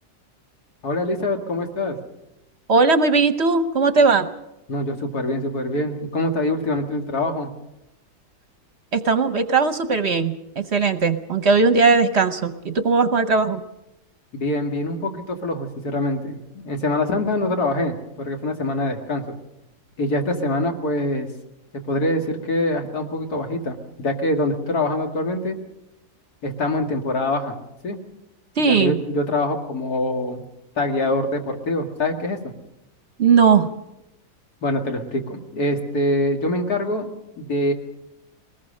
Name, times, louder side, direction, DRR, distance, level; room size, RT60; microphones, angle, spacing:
voice 1, 0.8-2.0 4.7-7.5 14.3-19.2 20.0-21.3 21.9-25.6 26.4-27.6 27.8-28.0 28.7-30.4 30.8-32.5 34.6-37.7, left 1 dB, 75° left, 4 dB, 2.4 m, -24 dB
voice 2, 2.7-4.3 8.9-13.6 28.6-29.0 33.2-33.7, right 4 dB, 50° right, 11 dB, 1.0 m, -18 dB
22.0 x 19.0 x 6.5 m, 0.91 s
omnidirectional pair, 1.7 m